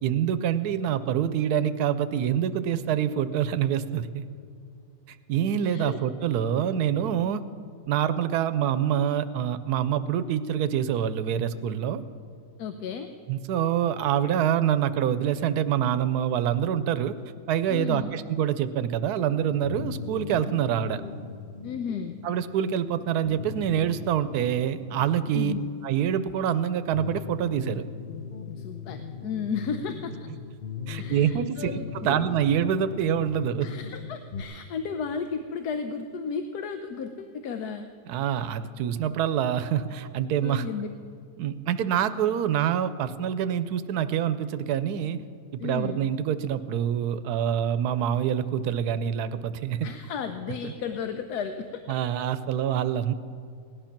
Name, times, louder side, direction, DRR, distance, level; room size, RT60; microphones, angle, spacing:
voice 1, 0.0-4.3 5.1-7.4 7.9-12.0 13.3-17.2 17.5-21.0 22.2-25.5 25.8-27.8 30.9-31.7 32.0-33.7 38.1-40.6 41.4-45.2 45.6-49.9 51.9-53.1, right 9 dB, 85° right, 12 dB, 1.2 m, -26 dB
voice 2, 5.7-6.0 12.6-13.1 17.7-18.1 21.6-22.2 25.3-25.7 28.6-30.3 30.9-32.3 33.6-37.9 40.4-40.9 42.4-42.5 45.6-46.1 49.8-51.8, left 6 dB, 90° left, 7 dB, 1.2 m, -34 dB
sound 1, 19.6-34.4, left 6 dB, 45° left, 0.7 m, -39 dB
17.5 x 11.0 x 5.9 m, 2.4 s
omnidirectional pair, 1.6 m